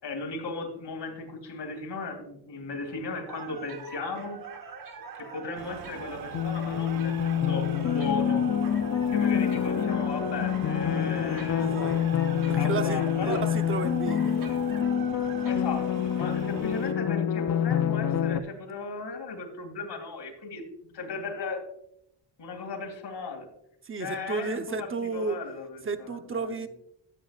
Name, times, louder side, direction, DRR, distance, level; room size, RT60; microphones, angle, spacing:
voice 1, 0.0-4.4 5.2-8.4 9.1-11.8 12.5-13.4 15.4-21.6 22.4-23.5 24.0-26.7, left 4 dB, 65° left, 2 dB, 2.6 m, -36 dB
sound 1, 3.3-15.6, right 6 dB, 45° right, 1.3 m, -42 dB
sound 2, 5.6-16.9, right 8 dB, 90° right, 0.8 m, -45 dB
sound 3, 6.3-18.4, left 9 dB, 40° left, 0.4 m, -27 dB
voice 2, 11.6-12.0 12.5-14.3 23.8-25.4 25.8-26.7, right 4 dB, 30° right, 8 dB, 0.8 m, -32 dB
13.5 x 8.2 x 2.4 m, 0.76 s
cardioid pair, 120°, 45 cm